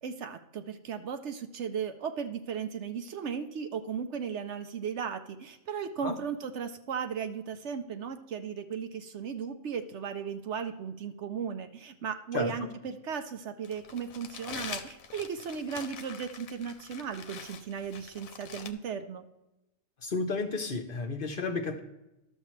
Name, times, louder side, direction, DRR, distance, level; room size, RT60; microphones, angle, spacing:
voice 1, 0.0-19.2, right 7 dB, 65° right, 8 dB, 0.8 m, -36 dB
Crumpling crinkling, 13.6-18.7, left 7 dB, 85° left, 1.1 m, -44 dB
voice 2, 20.0-21.8, left 3 dB, 50° left, 6 dB, 0.8 m, -32 dB
12.0 x 7.3 x 3.2 m, 0.94 s
omnidirectional pair, 1.4 m